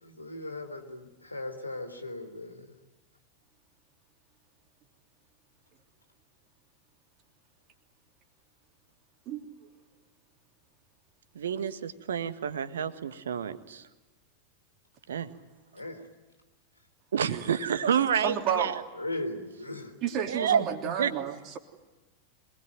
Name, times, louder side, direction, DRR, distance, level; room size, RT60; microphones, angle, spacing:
voice 1, 0.0-2.7 15.7-16.0 19.0-19.9, left 2 dB, 85° left, 5 dB, 3.6 m, -38 dB
voice 2, 9.3-9.6 17.2-17.6 18.2-18.8 20.0-21.6, right 8 dB, 35° right, 4 dB, 3.3 m, -31 dB
voice 3, 11.3-13.8 15.1-15.3 17.1-18.8 20.3-20.7 21.0-21.1, right 8 dB, 65° right, 11 dB, 1.6 m, -29 dB
26.0 x 20.0 x 9.5 m, 1.2 s
figure-of-eight pair, 90°, 0 cm